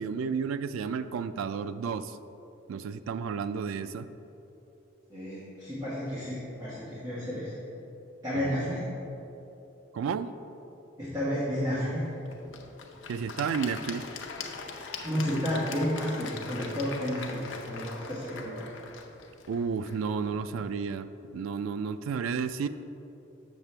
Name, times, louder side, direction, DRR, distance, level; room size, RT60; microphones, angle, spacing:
voice 1, 0.0-2.2 2.7-4.1 8.3-8.7 9.9-10.3 13.1-14.1 19.5-22.7, right 6 dB, 90° right, 13 dB, 0.3 m, -32 dB
voice 2, 5.1-7.5 8.2-8.8 11.0-12.0 15.0-18.7, equal, 20° right, -10 dB, 1.3 m, -31 dB
Applause / Crowd, 11.8-20.9, left 4 dB, 65° left, 0.6 m, -42 dB
7.3 x 6.7 x 3.3 m, 2.9 s
head